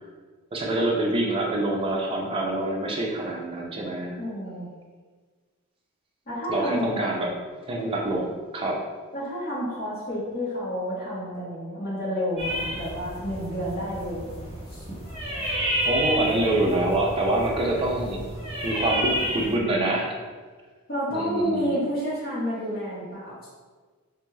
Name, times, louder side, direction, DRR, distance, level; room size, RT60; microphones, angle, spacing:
voice 1, 0.5-4.2 6.5-7.3 7.7-8.8 15.9-18.2 18.6-20.1 21.1-21.8, right 1 dB, 25° right, -1 dB, 0.4 m, -26 dB
voice 2, 4.2-4.7 6.3-7.0 9.1-14.8 20.9-23.3, equal, 45° left, -9 dB, 1.1 m, -30 dB
sound 1, 12.4-19.6, equal, 30° left, 1.4 m, -30 dB
2.5 x 2.3 x 3.1 m, 1.4 s
head